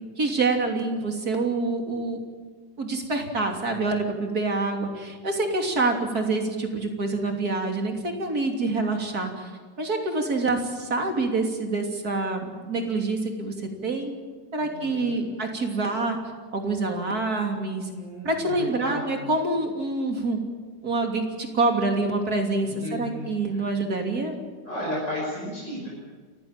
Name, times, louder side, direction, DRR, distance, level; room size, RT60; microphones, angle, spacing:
voice 1, 0.2-2.2 2.8-9.5 9.8-14.1 14.5-16.2 16.5-17.9 18.2-20.4 20.8-24.3, right 3 dB, 50° right, 2 dB, 3.5 m, -26 dB
voice 2, 14.6-15.3 17.9-19.3 22.6-23.6 24.6-25.9, equal, 65° left, -4 dB, 6.8 m, -34 dB
28.5 x 15.5 x 9.0 m, 1.5 s
omnidirectional pair, 2.1 m